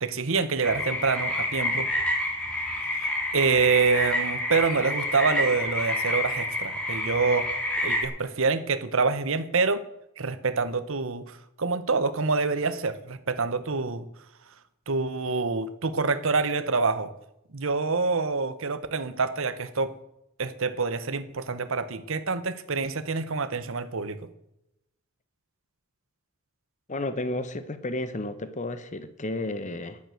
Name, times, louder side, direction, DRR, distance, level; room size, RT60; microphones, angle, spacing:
voice 1, 0.0-1.9 2.9-7.5 7.8-9.8 10.2-14.1 14.9-17.1 17.5-19.9 20.4-24.2, right 4 dB, 60° right, 11 dB, 1.0 m, -26 dB
sound 1, 0.6-8.1, left 1 dB, 5° left, 2.8 m, -28 dB
voice 2, 26.9-30.0, left 2 dB, 35° left, 12 dB, 0.9 m, -32 dB
11.0 x 9.6 x 7.7 m, 0.82 s
head